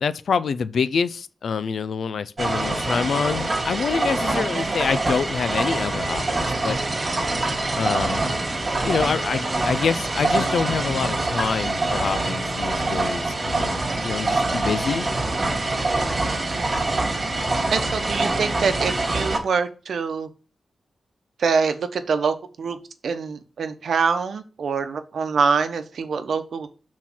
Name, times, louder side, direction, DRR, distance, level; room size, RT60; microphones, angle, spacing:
voice 1, 0.0-6.8 7.8-8.2 8.8-15.0, left 6 dB, 75° left, 0.4 m, -26 dB
sound 1, 2.4-19.4, right 2 dB, 35° right, 2.0 m, -25 dB
voice 2, 4.3-4.8 16.5-16.8 17.7-20.3 21.4-22.8 23.0-26.7, right 5 dB, 75° right, 0.9 m, -25 dB
6.2 x 4.2 x 6.1 m
wide cardioid pair, 105°, 0 cm